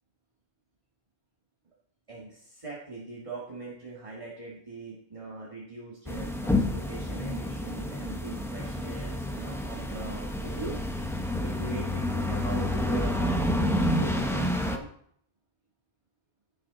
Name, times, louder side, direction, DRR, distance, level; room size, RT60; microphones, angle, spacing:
voice 1, 2.1-10.8 11.4-14.9, right 3 dB, 30° right, -5 dB, 2.3 m, -41 dB
sound 1, 6.1-14.8, equal, 5° left, 1.1 m, -29 dB
sound 2, 10.2-14.9, left 8 dB, 35° left, 1.7 m, -37 dB
16.0 x 7.0 x 4.1 m, 0.65 s
omnidirectional pair, 1.0 m